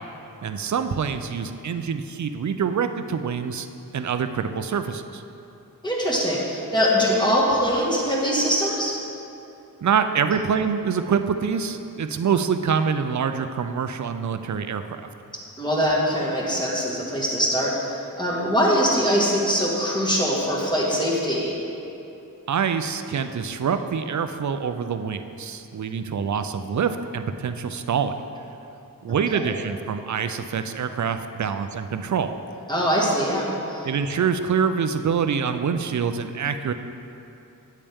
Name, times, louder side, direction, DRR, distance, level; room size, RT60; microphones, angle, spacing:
voice 1, 0.4-3.7 3.9-5.2 9.8-15.0 22.5-28.1 29.0-32.3 33.8-36.7, right 6 dB, 55° right, 9 dB, 0.5 m, -25 dB
voice 2, 5.8-9.0 15.6-21.6 32.7-33.9, equal, 10° left, -5 dB, 1.7 m, -22 dB
8.5 x 8.5 x 3.5 m, 2.8 s
wide cardioid pair, 70°, 35 cm